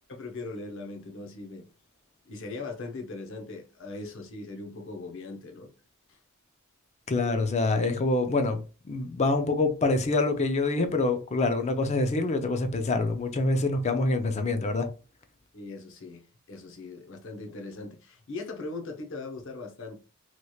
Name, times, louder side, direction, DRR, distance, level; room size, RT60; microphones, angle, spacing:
voice 1, 0.1-1.7 2.2-5.7 6.1-6.2 15.5-20.0, left 3 dB, 65° left, 0.7 m, -40 dB
voice 2, 7.1-14.9, left 2 dB, 30° left, 0.5 m, -26 dB
3.1 x 2.8 x 2.3 m
head